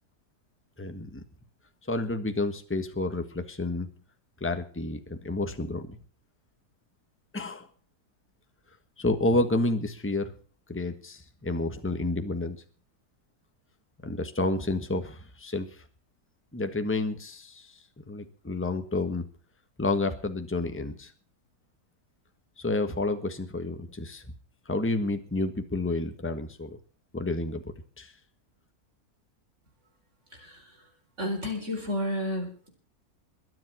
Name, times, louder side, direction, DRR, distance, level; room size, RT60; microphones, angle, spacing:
voice 1, 0.8-1.2 1.9-3.9 4.4-6.0 7.3-7.7 9.0-10.3 10.7-12.6 14.0-15.7 16.5-17.8 18.1-19.2 19.8-21.1 22.6-24.2 24.6-26.8 27.1-28.1, left 2 dB, 10° left, 7 dB, 1.3 m, -30 dB
voice 2, 30.3-30.9 31.2-32.7, left 1 dB, 50° right, 3 dB, 4.7 m, -32 dB
22.5 x 7.7 x 6.2 m, 0.41 s
omnidirectional pair, 1.6 m